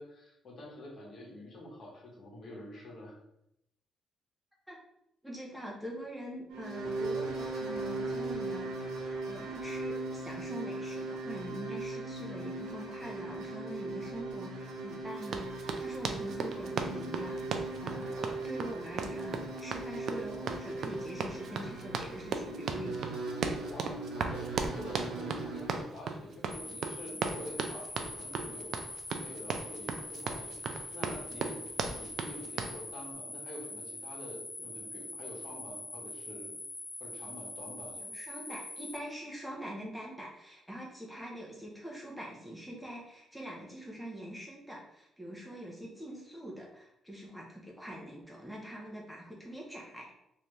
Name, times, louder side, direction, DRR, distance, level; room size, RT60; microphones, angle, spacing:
voice 1, 0.0-3.2 23.7-28.8 29.1-36.5 37.0-38.0, left 1 dB, 55° left, -2 dB, 1.3 m, -47 dB
voice 2, 5.2-8.7 9.2-23.1 37.9-50.2, equal, ahead, -3 dB, 0.9 m, -44 dB
sound 1, 6.5-25.8, right 3 dB, 80° right, 0.7 m, -39 dB
Run, 15.2-32.8, right 5 dB, 65° right, 0.4 m, -37 dB
sound 2, 26.5-39.0, left 2 dB, 20° left, 0.5 m, -44 dB
3.3 x 2.8 x 3.2 m, 0.81 s
cardioid pair, 90°, 0 cm